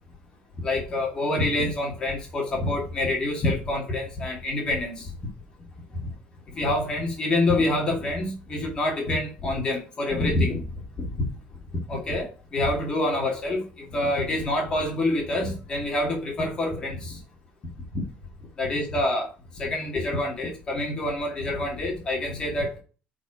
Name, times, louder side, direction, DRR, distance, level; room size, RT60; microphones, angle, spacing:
voice 1, 0.6-5.1 6.6-10.6 11.0-11.3 11.9-13.6 13.9-17.2 18.6-19.3 19.6-22.8, left 1 dB, 25° left, -1 dB, 2.3 m, -26 dB
8.1 x 4.6 x 4.9 m, 0.35 s
cardioid pair, 175°, 4 cm